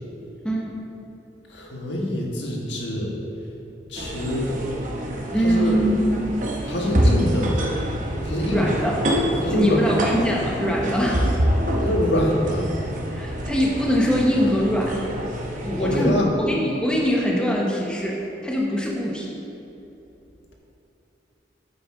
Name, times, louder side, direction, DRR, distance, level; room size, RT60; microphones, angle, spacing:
voice 1, 1.5-3.1 3.9-4.6 5.4-5.8 6.7-7.5 8.2-8.7 9.4-9.9 11.7-12.7 15.7-16.3, left 1 dB, 80° left, -1 dB, 1.5 m, -25 dB
sound 1, 4.0-16.1, equal, 45° right, 1.0 m, -26 dB
voice 2, 5.3-6.3 8.5-9.0 9.5-11.3 13.1-15.0 15.6-19.4, equal, 5° left, -3 dB, 0.9 m, -23 dB
8.9 x 8.5 x 3.7 m, 3.0 s
head